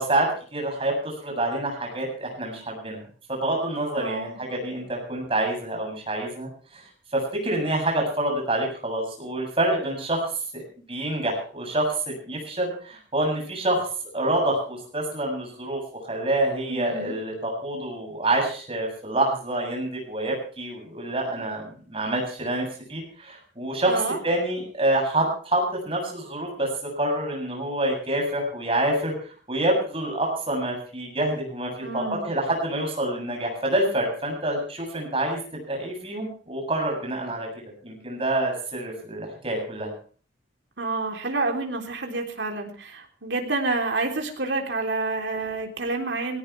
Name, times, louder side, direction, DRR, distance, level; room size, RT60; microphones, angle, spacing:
voice 1, 0.0-3.0 3.3-6.8 7.1-10.6 10.9-13.9 14.1-15.8 16.1-21.6 21.9-26.7 27.0-37.5 37.8-39.9, right 1 dB, 30° right, 1 dB, 7.7 m, -27 dB
voice 2, 4.0-4.4 16.7-17.1 23.8-24.2 31.8-32.2 40.8-46.4, right 3 dB, 75° right, 3 dB, 3.5 m, -28 dB
19.0 x 17.5 x 3.4 m, 0.41 s
head